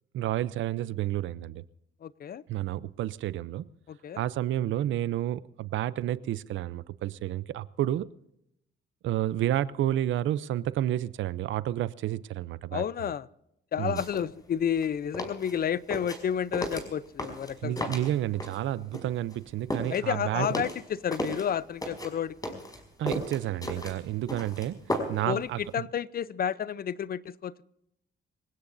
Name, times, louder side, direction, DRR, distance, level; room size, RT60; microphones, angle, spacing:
voice 1, 0.1-1.6 2.5-3.6 4.2-8.1 9.0-12.8 13.8-14.0 17.6-20.5 23.0-25.9, right 13 dB, 75° right, 0.6 m, -30 dB
voice 2, 2.0-2.4 3.9-4.2 12.7-13.3 13.7-17.9 19.9-22.6 25.3-27.6, left 8 dB, 50° left, 0.6 m, -31 dB
sound 1, 14.0-14.2 14.6-18.7 18.9-21.5 21.8-25.3 25.6-25.7, left 1 dB, 20° left, 5.0 m, -35 dB
26.5 x 17.0 x 2.7 m
cardioid pair, 90°, 20 cm